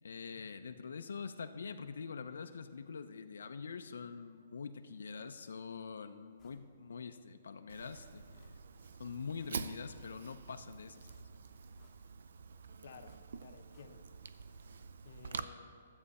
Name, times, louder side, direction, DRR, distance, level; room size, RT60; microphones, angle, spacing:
voice 1, 0.0-8.5 9.0-11.2, left 5 dB, 90° left, 8 dB, 0.5 m, -45 dB
sound 1, 6.4-6.7 7.1-7.2 8.3-8.8 9.2-10.1 11.0-12.3 13.0-14.3 14.5-14.6, left 3 dB, 10° left, 0.9 m, -70 dB
Fire, 7.7-15.4, right 5 dB, 60° right, 0.4 m, -47 dB
voice 2, 12.8-14.1 15.0-15.9, left 6 dB, 50° left, 7 dB, 0.6 m, -55 dB
13.0 x 7.8 x 4.2 m, 2.3 s
hypercardioid pair, 180°, 0 cm